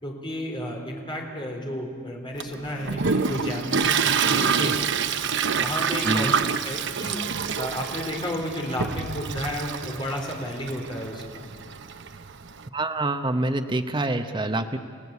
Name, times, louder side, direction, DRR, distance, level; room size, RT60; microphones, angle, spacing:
voice 1, 0.0-4.9 5.6-6.3 6.6-7.2 7.6-11.4, equal, 25° left, 0 dB, 3.8 m, -32 dB
Toilet flush, 2.4-12.6, right 6 dB, 55° right, 0.8 m, -27 dB
voice 2, 12.7-14.8, right 2 dB, 20° right, 6 dB, 0.9 m, -26 dB
30.0 x 16.5 x 8.3 m, 2.2 s
head